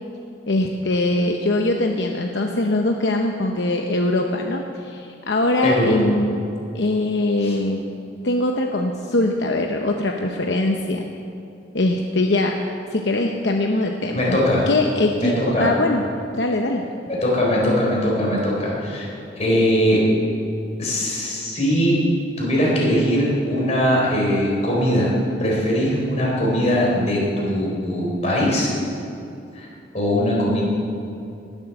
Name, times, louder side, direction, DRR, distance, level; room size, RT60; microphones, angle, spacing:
voice 1, 0.5-6.4 6.7-7.8 8.2-11.1 11.7-12.6 12.9-14.4 14.7-16.0 16.4-16.8, left 2 dB, 70° left, 2 dB, 0.9 m, -22 dB
voice 2, 5.6-6.0 7.4-7.5 14.1-14.7 15.2-15.7 17.1-19.1 19.4-20.1 20.8-22.1 22.4-25.1 25.4-28.7 29.5-29.7 29.9-30.6, equal, 35° left, -4 dB, 4.3 m, -20 dB
19.0 x 8.1 x 7.0 m, 2.7 s
head